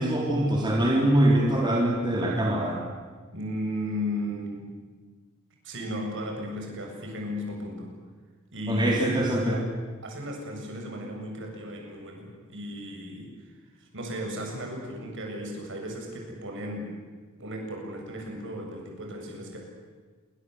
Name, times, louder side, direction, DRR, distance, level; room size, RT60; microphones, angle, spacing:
voice 1, 0.0-2.8 8.7-9.5, right 1 dB, 20° right, -2 dB, 4.0 m, -23 dB
voice 2, 3.3-4.7 5.6-7.9 8.5-9.1 9.4-9.6 10.0-16.9 17.4-19.6, equal, 60° right, 1 dB, 7.7 m, -35 dB
28.0 x 24.0 x 8.1 m, 1.4 s
head